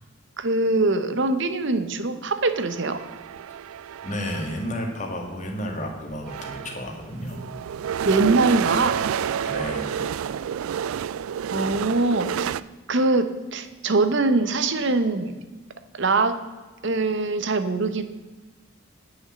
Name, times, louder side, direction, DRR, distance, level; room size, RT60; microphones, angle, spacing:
voice 1, 0.4-3.0 8.0-9.0 11.5-12.5 12.9-15.3 16.0-16.4 16.8-18.0, right 3 dB, 55° right, 10 dB, 0.8 m, -22 dB
sound 1, 2.5-4.8 5.7-5.8 6.1-12.6, right 8 dB, 75° right, 0.3 m, -29 dB
voice 2, 4.0-7.4 9.4-10.1, equal, 35° left, 2 dB, 1.8 m, -32 dB
9.5 x 6.1 x 7.5 m, 1.3 s
head